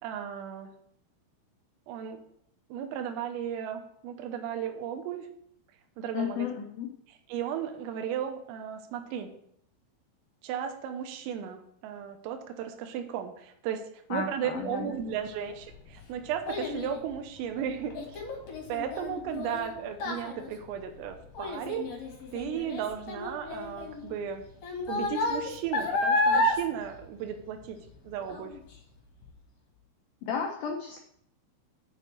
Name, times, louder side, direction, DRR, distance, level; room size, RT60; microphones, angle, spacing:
voice 1, 0.0-0.7 1.9-2.2 2.7-5.3 6.0-6.5 7.3-9.3 10.4-13.8 14.1-18.2 18.7-21.9 22.3-24.5 24.9-27.8 28.1-28.5, right 9 dB, 90° right, 6 dB, 3.6 m, -35 dB
voice 2, 6.1-6.9 14.1-15.0 30.2-31.0, left 6 dB, 85° left, 1 dB, 2.0 m, -33 dB
Child speech kid speaking, 15.3-27.9 28.3-28.7 29.2-29.3, left 2 dB, 45° left, 2.7 m, -32 dB
7.9 x 6.5 x 7.7 m, 0.71 s
omnidirectional pair, 5.8 m